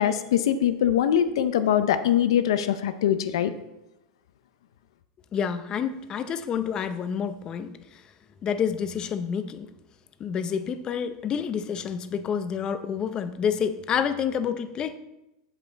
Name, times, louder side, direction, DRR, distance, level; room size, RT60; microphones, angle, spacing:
voice 1, 0.0-3.5, left 10 dB, 80° left, 11 dB, 0.6 m, -22 dB
voice 2, 5.3-8.0 8.4-9.7 10.2-15.0, left 7 dB, 30° left, 11 dB, 0.6 m, -28 dB
7.8 x 5.8 x 4.0 m, 0.93 s
supercardioid pair, 130°, 3 cm